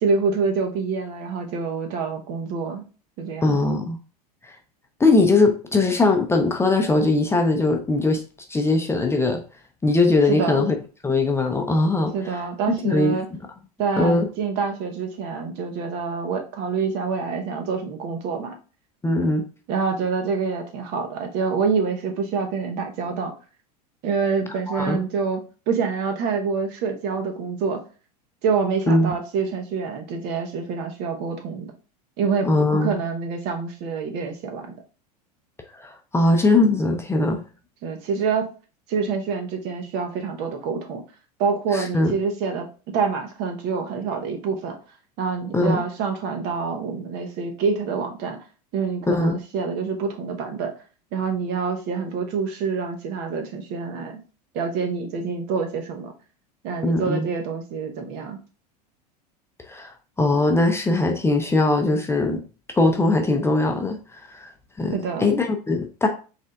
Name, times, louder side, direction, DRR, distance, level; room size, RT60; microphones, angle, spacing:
voice 1, 0.0-2.8 3.2-3.6 10.3-10.7 12.1-13.3 13.8-18.5 19.7-23.3 24.0-27.8 28.4-31.7 32.2-34.7 37.8-38.5 38.9-41.0 41.4-42.7 42.9-44.8 45.2-48.4 48.7-50.7 51.1-54.2 54.5-56.1 56.6-58.4 64.9-65.3, right 5 dB, 55° right, 1.1 m, -26 dB
voice 2, 3.4-4.0 5.0-8.2 8.5-9.4 9.8-10.7 11.0-12.4 12.7-13.2 14.0-14.3 19.0-19.4 24.7-25.0 28.9-29.1 32.4-33.0 35.7-37.4 41.7-42.1 45.5-45.8 49.1-49.4 56.8-57.3 59.7-62.4 62.8-64.0 64.3-64.5 64.8-66.1, left 2 dB, 10° left, 0.6 m, -20 dB
5.4 x 3.5 x 2.4 m
hypercardioid pair, 95°, 21 cm